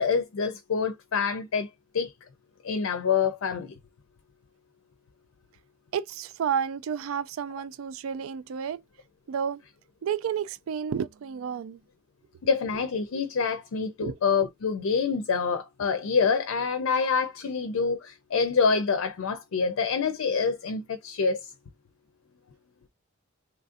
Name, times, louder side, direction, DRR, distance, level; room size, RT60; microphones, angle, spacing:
voice 1, 0.0-1.7 1.9-2.1 2.6-3.7 12.4-21.4, left 5 dB, 85° left, 0.5 m, -26 dB
voice 2, 5.9-8.8 9.3-9.6 10.0-11.8 14.0-14.2, right 7 dB, 80° right, 0.3 m, -31 dB
3.1 x 2.5 x 2.4 m
head